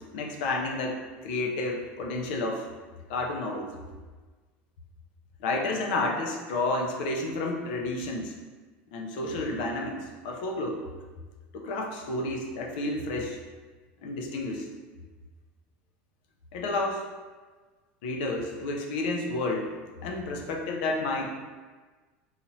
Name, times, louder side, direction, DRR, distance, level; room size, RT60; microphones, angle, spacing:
voice 1, 0.1-2.7 3.1-3.7 5.4-8.3 8.9-10.8 11.5-13.4 14.0-14.7 16.5-17.1 18.0-19.7 20.0-21.3, left 2 dB, 75° left, 1 dB, 0.7 m, -30 dB
4.0 x 2.8 x 2.9 m, 1.4 s
supercardioid pair, 135°, 5 cm